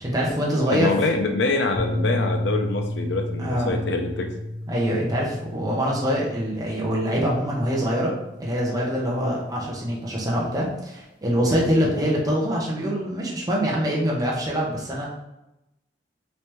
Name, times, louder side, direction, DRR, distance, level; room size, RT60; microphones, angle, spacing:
voice 1, 0.0-0.9 3.4-3.8 4.7-8.1 8.4-15.1, equal, 20° right, -4 dB, 0.7 m, -24 dB
voice 2, 0.7-4.3 11.5-11.6, left 3 dB, 75° left, 4 dB, 0.5 m, -25 dB
sound 1, 1.7-10.1, left 1 dB, 50° left, 0.9 m, -33 dB
3.2 x 3.2 x 3.0 m, 0.91 s
head